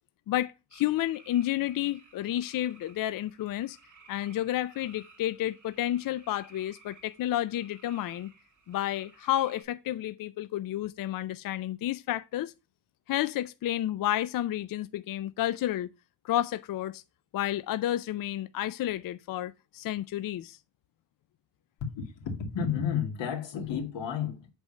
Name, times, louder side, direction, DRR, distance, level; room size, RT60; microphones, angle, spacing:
voice 1, 0.3-3.8 4.1-8.3 8.7-12.5 13.1-15.9 16.2-17.0 17.3-20.6, left 13 dB, 55° left, 0.5 m, -31 dB
sound 1, 0.7-9.6, right 4 dB, 40° right, 2.1 m, -57 dB
voice 2, 21.8-24.5, left 7 dB, 85° left, 2.3 m, -32 dB
8.1 x 3.6 x 6.5 m
cardioid pair, 140°, 43 cm